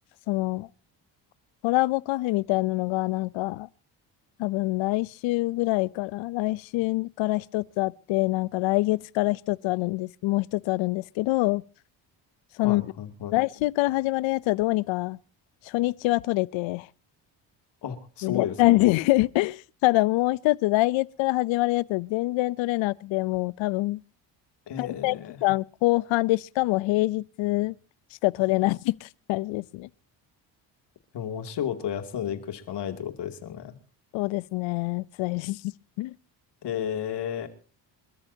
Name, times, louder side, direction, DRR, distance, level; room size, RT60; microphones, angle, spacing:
voice 1, 0.3-0.7 1.6-3.7 4.4-11.6 12.6-12.9 13.3-15.2 15.6-16.9 18.2-24.0 24.8-27.8 28.2-29.9 34.1-35.6 36.0-36.1, left 20 dB, 85° left, 0.7 m, -25 dB
voice 2, 12.6-13.4 17.8-18.7 24.7-25.4 31.1-33.8 36.6-37.5, left 9 dB, 65° left, 2.8 m, -32 dB
27.0 x 13.5 x 2.8 m
cardioid pair, 95°, 45 cm